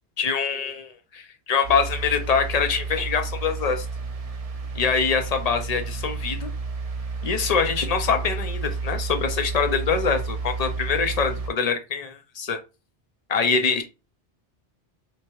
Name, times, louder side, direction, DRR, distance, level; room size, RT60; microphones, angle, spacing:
voice 1, 0.2-3.9 4.7-6.5 7.2-12.6 13.3-13.8, left 5 dB, 45° left, 7 dB, 0.5 m, -24 dB
sound 1, 1.6-11.5, right 4 dB, 45° right, 0.5 m, -31 dB
3.2 x 2.9 x 3.0 m, 0.29 s
omnidirectional pair, 1.2 m